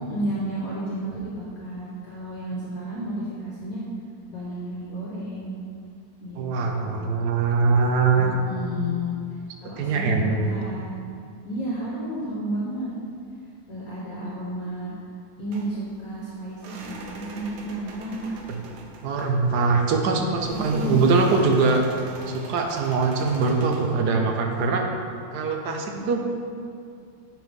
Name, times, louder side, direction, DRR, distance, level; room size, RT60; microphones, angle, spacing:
voice 1, 0.0-3.8 4.3-5.5 6.2-6.9 8.1-9.1 9.6-11.0 11.4-12.9 13.7-14.9 15.4-18.4 20.5-21.0 25.9-26.2, right 1 dB, 55° left, -6 dB, 1.5 m, -32 dB
voice 2, 6.3-8.3 9.8-10.5 18.5-18.6 19.0-21.8 22.3-24.8 25.3-26.2, right 4 dB, 65° right, 3 dB, 1.2 m, -22 dB
sound 1, 15.5-24.0, right 3 dB, 90° right, 1.5 m, -44 dB
9.3 x 4.9 x 3.6 m, 2.3 s
omnidirectional pair, 2.0 m